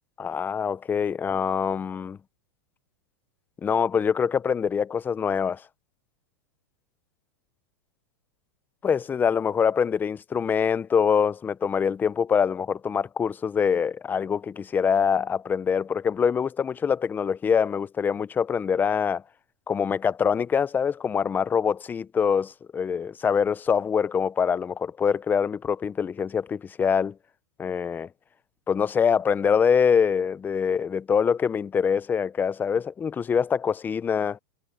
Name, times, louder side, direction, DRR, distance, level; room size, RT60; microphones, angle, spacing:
voice 1, 0.2-2.2 3.6-5.6 8.8-19.2 19.7-27.1 27.6-28.1 28.7-34.4, left 7 dB, 15° left, 0.6 m, -24 dB
supercardioid pair, 135°, 12 cm